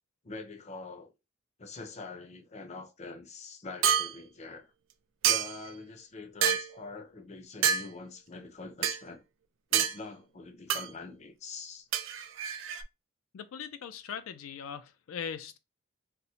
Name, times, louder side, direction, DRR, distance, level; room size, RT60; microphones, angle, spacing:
voice 1, 0.2-1.1 1.6-4.7 5.3-9.2 9.7-11.9, left 3 dB, 35° left, 0.5 m, -44 dB
sound 1, 3.8-4.1 5.2-5.7 6.4-6.7 7.6-7.8 8.8-9.0 9.7-9.9 10.7-10.9 11.9-12.8, right 8 dB, 70° right, 0.4 m, -27 dB
voice 2, 13.3-15.6, left 7 dB, 85° left, 0.4 m, -40 dB
4.1 x 2.1 x 2.7 m
head